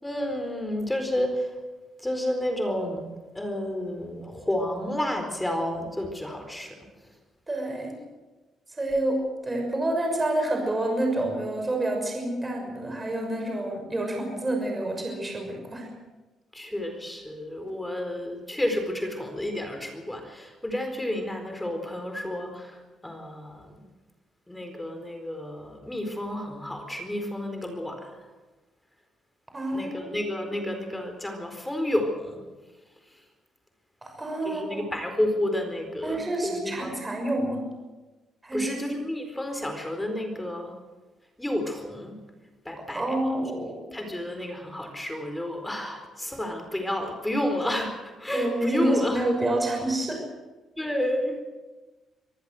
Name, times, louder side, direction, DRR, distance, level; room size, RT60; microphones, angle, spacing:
voice 1, 0.0-1.6 2.0-3.1 3.3-6.8 16.5-23.9 24.5-28.3 29.7-32.4 33.1-33.2 34.4-37.0 38.5-40.8 41.4-42.2 42.6-43.2 43.9-49.3 50.8-51.4, left 1 dB, 10° left, 5 dB, 4.4 m, -31 dB
voice 2, 7.5-8.0 8.7-15.9 29.5-30.1 34.0-34.9 36.0-37.6 38.4-38.7 42.9-43.8 48.3-50.2, right 1 dB, 20° right, 2 dB, 6.3 m, -28 dB
25.0 x 15.0 x 7.8 m, 1.2 s
cardioid pair, 90°, 0 cm